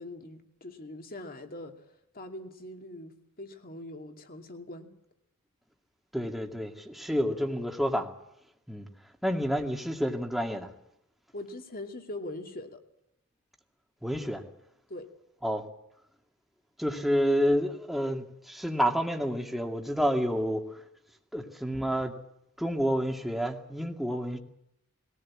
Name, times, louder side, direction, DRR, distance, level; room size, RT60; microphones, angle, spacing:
voice 1, 0.0-1.9 2.1-4.9 11.3-12.8 14.9-15.1, left 1 dB, 40° left, 5 dB, 2.5 m, -42 dB
voice 2, 6.1-8.1 8.7-8.9 9.2-10.7 14.0-14.4 15.4-15.7 16.8-20.8 21.3-22.1 22.6-24.4, equal, ahead, 3 dB, 2.2 m, -29 dB
21.5 x 18.0 x 8.6 m, 0.78 s
head